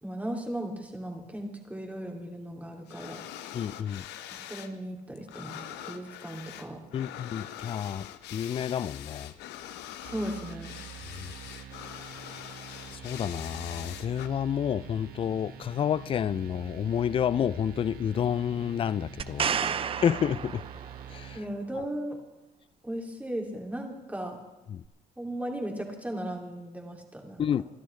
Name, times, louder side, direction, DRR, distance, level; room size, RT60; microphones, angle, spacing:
voice 1, 0.0-3.2 4.5-6.8 10.0-10.7 19.4-19.8 21.3-22.2 22.8-24.4 25.2-27.4, right 1 dB, 10° right, 2.7 m, -36 dB
sound 1, 2.9-4.7 5.0-14.3, left 11 dB, 85° left, 0.8 m, -43 dB
voice 2, 3.5-4.0 6.9-9.3 11.2-11.3 12.9-19.5 20.0-20.6 21.1-21.4 24.7-24.8 27.4-27.6, left 9 dB, 35° left, 0.4 m, -29 dB
sound 2, 10.0-21.4, right 9 dB, 65° right, 1.5 m, -46 dB
sound 3, 19.2-21.2 24.8-24.9, right 7 dB, 35° right, 0.5 m, -31 dB
26.0 x 11.5 x 3.3 m
cardioid pair, 110°, 17 cm